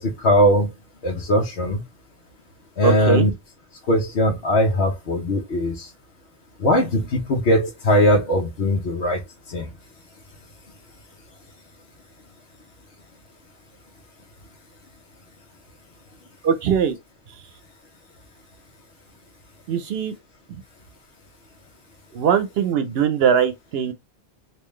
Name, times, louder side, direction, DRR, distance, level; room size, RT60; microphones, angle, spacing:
voice 1, 0.0-0.7 1.0-1.8 2.8-3.3 3.9-5.9 6.6-9.2 9.5-9.7, equal, 75° left, 1.1 m, -20 dB
voice 2, 2.8-3.3 16.4-17.0 19.7-20.1 22.1-23.9, right 7 dB, 75° right, 0.8 m, -20 dB
3.7 x 2.7 x 3.1 m
omnidirectional pair, 1.1 m